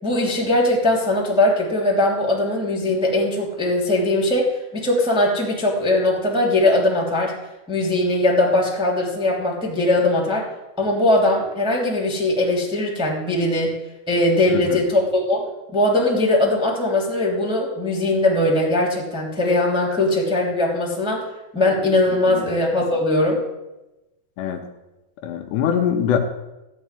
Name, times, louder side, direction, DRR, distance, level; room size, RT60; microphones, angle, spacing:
voice 1, 0.0-7.3 7.7-10.4 10.8-13.7 14.1-15.4 15.7-21.2 21.5-23.4, left 1 dB, ahead, -3 dB, 1.7 m, -20 dB
voice 2, 25.2-26.2, left 8 dB, 75° left, 5 dB, 3.0 m, -23 dB
15.5 x 5.4 x 9.8 m, 1.0 s
omnidirectional pair, 5.2 m